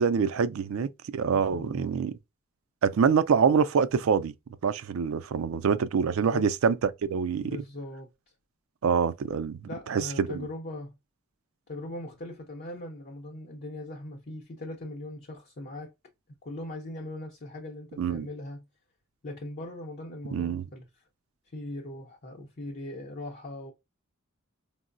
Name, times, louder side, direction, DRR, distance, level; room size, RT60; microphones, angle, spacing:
voice 1, 0.0-2.1 2.8-4.3 4.6-7.6 8.8-9.6 9.9-10.5 18.0-18.3 20.3-20.6, right 6 dB, 75° right, 0.4 m, -25 dB
voice 2, 1.3-2.0 6.2-6.5 7.4-8.1 9.7-11.0 11.7-15.9 16.4-18.7 19.2-20.9 21.5-23.7, left 1 dB, 45° left, 0.7 m, -40 dB
4.5 x 2.0 x 2.5 m
head